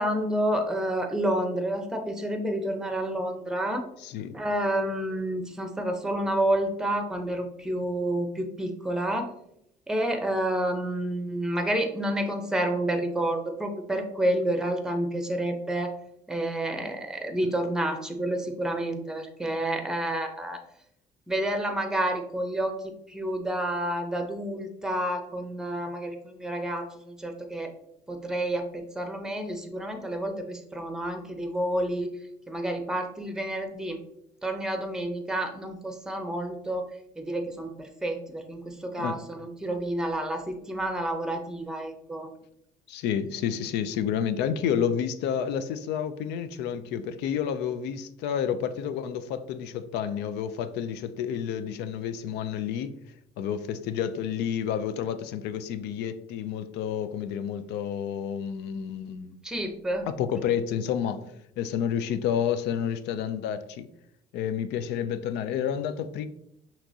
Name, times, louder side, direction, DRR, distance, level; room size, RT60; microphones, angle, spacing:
voice 1, 0.0-3.8 4.3-9.3 9.9-15.9 16.3-20.6 21.3-27.7 28.1-32.1 32.5-34.0 34.4-36.8 37.2-42.3 59.4-60.1, right 1 dB, 5° right, 0.7 m, -29 dB
voice 2, 4.0-4.4 39.0-39.2 42.9-52.9 53.4-59.4 60.1-61.3 61.6-63.9 64.3-66.3, left 8 dB, 85° left, 0.4 m, -30 dB
5.8 x 3.0 x 2.7 m
cardioid pair, 110°, 17 cm